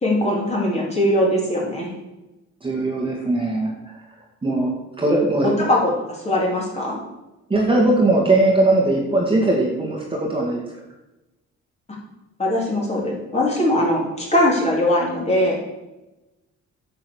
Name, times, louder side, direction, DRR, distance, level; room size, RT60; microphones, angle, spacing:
voice 1, 0.0-2.0 5.6-7.0 12.4-15.6, left 1 dB, 20° left, -3 dB, 3.4 m, -21 dB
voice 2, 2.6-4.0 4.4-5.7 7.5-10.6, right 2 dB, 20° right, -2 dB, 2.1 m, -20 dB
10.5 x 7.7 x 6.4 m, 1.0 s
cardioid pair, 120°, 29 cm